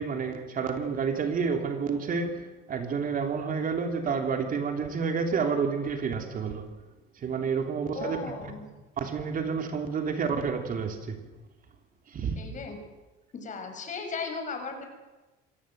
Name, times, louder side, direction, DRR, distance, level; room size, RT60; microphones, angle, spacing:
voice 1, 0.0-6.7 7.2-8.5 9.0-11.2 12.1-12.4, right 5 dB, 40° right, 5 dB, 3.1 m, -29 dB
voice 2, 7.9-8.6 12.4-12.8 13.3-14.8, left 4 dB, 40° left, 5 dB, 6.3 m, -36 dB
26.5 x 18.5 x 7.8 m, 1.1 s
cardioid pair, 125°, 21 cm